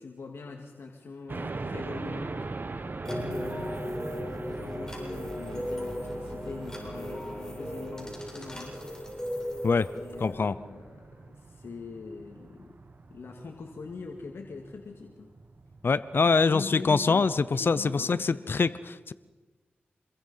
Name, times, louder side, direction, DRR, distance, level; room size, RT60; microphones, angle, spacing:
voice 1, 0.0-2.4 3.1-8.8 9.9-12.8 13.1-15.3 16.2-18.7, left 4 dB, 85° left, 2 dB, 2.1 m, -42 dB
sound 1, 1.3-18.0, right 3 dB, 55° right, 1.6 m, -42 dB
sound 2, 3.0-10.3, left 1 dB, 15° left, 7.4 m, -37 dB
voice 2, 10.2-10.6 15.8-19.1, left 4 dB, 65° left, 15 dB, 0.8 m, -24 dB
27.0 x 22.5 x 5.7 m, 1.3 s
cardioid pair, 50°, 4 cm